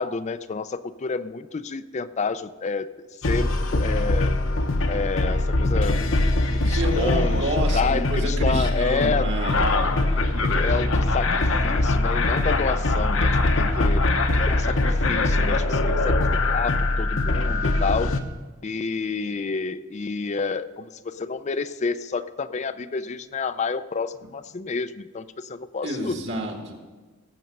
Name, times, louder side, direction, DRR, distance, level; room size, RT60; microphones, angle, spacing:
voice 1, 0.0-4.3 4.9-6.0 6.5-9.3 10.4-14.1 14.3-16.2 16.5-18.1 18.6-26.2, left 4 dB, 35° left, 14 dB, 0.4 m, -29 dB
sound 1, 3.2-18.2, left 2 dB, 65° left, 1.0 m, -22 dB
voice 2, 6.6-9.9 25.8-26.7, right 1 dB, 60° right, 2 dB, 2.1 m, -29 dB
18.0 x 7.5 x 5.4 m, 1.3 s
head